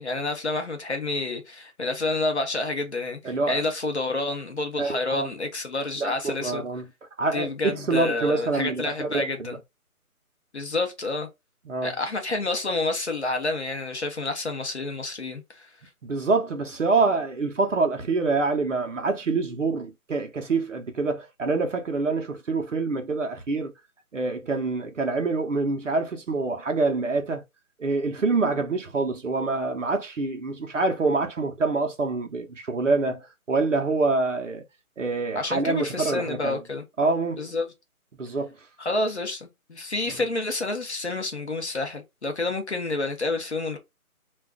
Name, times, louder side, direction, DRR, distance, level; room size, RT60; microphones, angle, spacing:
voice 1, 0.0-6.6 7.3-9.6 10.5-11.3 11.8-15.7 35.4-36.8 37.4-37.7 38.8-43.8, left 2 dB, 50° left, 0.7 m, -29 dB
voice 2, 3.2-3.6 4.8-5.3 6.0-6.8 7.2-9.6 11.7-11.9 16.0-23.7 24.1-27.4 27.8-34.6 35.0-36.6 37.0-37.5 38.2-38.5 40.1-40.2, right 3 dB, 60° right, 0.7 m, -26 dB
2.4 x 2.2 x 3.6 m
hypercardioid pair, 175°, 44 cm